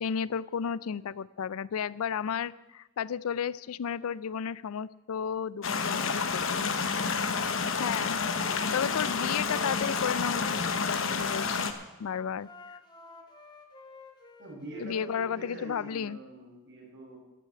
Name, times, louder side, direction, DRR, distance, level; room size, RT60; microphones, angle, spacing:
voice 1, 0.0-6.7 7.8-11.7 12.0-12.5 14.8-16.2, left 7 dB, 85° left, 20 dB, 0.4 m, -33 dB
sound 1, 5.6-11.7, left 5 dB, 65° left, 1.0 m, -29 dB
Wind instrument woodwind instrument, 8.9-11.8 12.4-15.9, left 2 dB, 20° left, 1.4 m, -50 dB
voice 2, 14.4-17.2, right 2 dB, 55° right, -3 dB, 5.8 m, -45 dB
14.0 x 6.6 x 8.8 m, 1.0 s
head